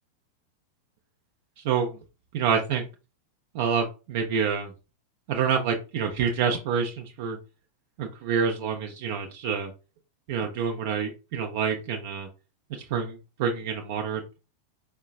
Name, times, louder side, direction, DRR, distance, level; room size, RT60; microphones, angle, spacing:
voice 1, 1.6-1.9 2.3-2.8 3.5-4.7 5.3-7.4 8.0-9.7 10.3-12.3 12.7-14.2, right 6 dB, 50° right, 3 dB, 0.5 m, -27 dB
4.5 x 2.2 x 2.4 m, 0.31 s
figure-of-eight pair, 90°, 0 cm